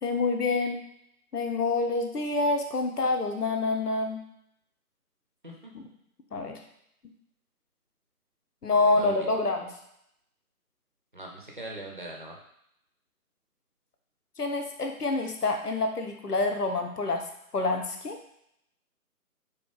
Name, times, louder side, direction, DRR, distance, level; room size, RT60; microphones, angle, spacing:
voice 1, 0.0-0.8 1.3-4.2 5.7-5.9 6.3-6.6 8.6-9.7 14.4-17.2 17.5-18.2, left 3 dB, 85° left, 4 dB, 0.9 m, -27 dB
voice 2, 8.7-9.3 11.1-12.4, right 1 dB, 35° right, -1 dB, 0.6 m, -41 dB
3.7 x 2.8 x 3.9 m, 0.75 s
figure-of-eight pair, 155°, 45 cm